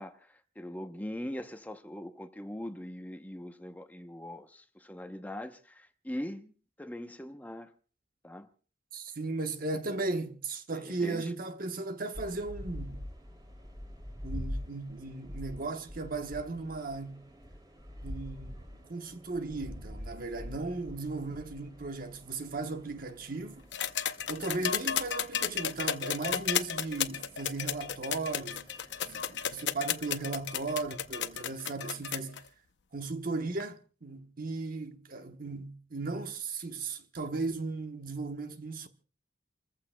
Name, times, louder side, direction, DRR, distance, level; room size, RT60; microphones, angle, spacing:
voice 1, 0.0-7.7 8.2-8.5 10.7-11.3 24.4-24.7, left 1 dB, 10° left, 0.8 m, -41 dB
voice 2, 8.9-13.0 14.2-17.2 18.0-23.7 24.3-28.7 29.0-32.4 32.9-38.9, right 3 dB, 55° right, 1.1 m, -36 dB
sound 1, 12.1-31.4, equal, 25° right, 2.6 m, -46 dB
sound 2, 23.7-32.4 33.6-33.7, left 9 dB, 75° left, 0.7 m, -33 dB
29.0 x 14.5 x 2.2 m
head